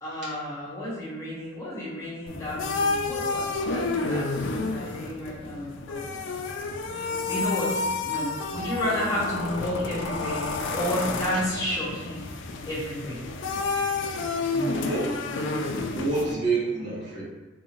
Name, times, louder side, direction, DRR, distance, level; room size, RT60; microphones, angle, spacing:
voice 1, 0.0-6.1 6.9-12.2 12.6-13.2, left 1 dB, 15° left, -8 dB, 1.0 m, -31 dB
sound 1, 2.3-16.3, left 3 dB, 65° left, 0.3 m, -30 dB
voice 2, 14.5-15.2 15.9-17.2, right 3 dB, 60° right, -8 dB, 1.4 m, -28 dB
3.8 x 2.7 x 2.9 m, 1.3 s
head